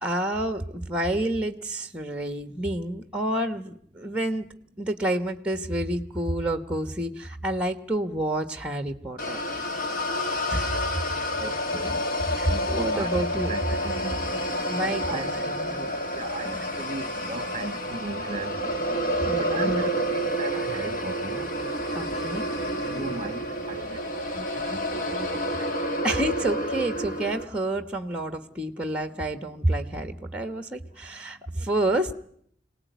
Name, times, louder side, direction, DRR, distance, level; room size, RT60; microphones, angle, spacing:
voice 1, 0.0-4.5 4.8-9.4 10.1-10.8 12.3-13.5 14.7-15.9 16.4-16.6 19.2-19.8 21.9-22.5 26.0-32.1, right 1 dB, 5° right, 1.2 m, -29 dB
sound 1, 9.2-27.4, equal, 50° left, 1.6 m, -29 dB
voice 2, 11.4-14.3 14.7-14.8 15.1-15.4 16.1-18.8 19.3-21.6 22.7-25.7, right 2 dB, 30° right, 1.2 m, -37 dB
25.5 x 18.0 x 9.4 m
head